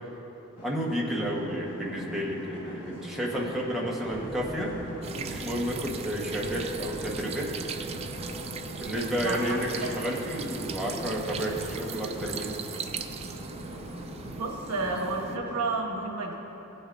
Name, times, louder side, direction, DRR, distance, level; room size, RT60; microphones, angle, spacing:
sound 1, 0.6-15.6, equal, 75° left, 1.8 m, -41 dB
voice 1, 0.6-4.7 5.0-7.5 8.7-12.6, equal, ahead, -5 dB, 1.3 m, -31 dB
sound 2, 4.1-12.2, left 1 dB, 40° left, 0.8 m, -45 dB
sound 3, 5.0-15.4, right 6 dB, 30° right, 0.3 m, -39 dB
voice 2, 9.2-9.6 14.3-16.3, right 3 dB, 80° right, 1 dB, 1.2 m, -31 dB
16.5 x 7.9 x 2.6 m, 3.0 s
head